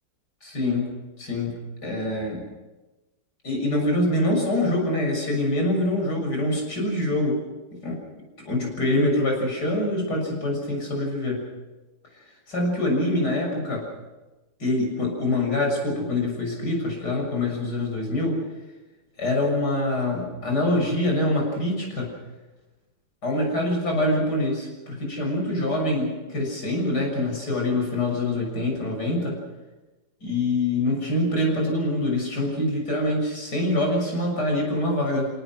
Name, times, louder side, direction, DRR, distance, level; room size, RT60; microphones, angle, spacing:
voice 1, 0.4-0.9 1.2-2.5 3.4-7.4 7.8-8.0 8.4-11.5 12.5-13.9 14.6-18.4 19.2-22.1 23.2-29.4 30.2-35.3, left 1 dB, 60° left, 0 dB, 7.5 m, -25 dB
30.0 x 18.0 x 6.3 m, 1.1 s
omnidirectional pair, 2.0 m